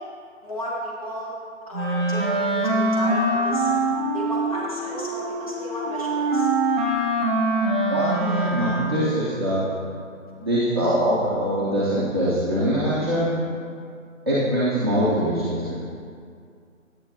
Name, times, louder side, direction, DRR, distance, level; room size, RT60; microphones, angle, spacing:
voice 1, 0.4-1.3 1.7-3.7 4.1-6.5 8.2-8.4, equal, 25° left, -5 dB, 1.2 m, -33 dB
Wind instrument woodwind instrument, 1.7-9.2, right 2 dB, 40° right, 1.4 m, -24 dB
voice 2, 7.9-9.6 10.4-13.3 14.3-15.8, equal, 20° right, -11 dB, 0.8 m, -23 dB
8.7 x 8.4 x 2.7 m, 2.3 s
figure-of-eight pair, 155°, 40 cm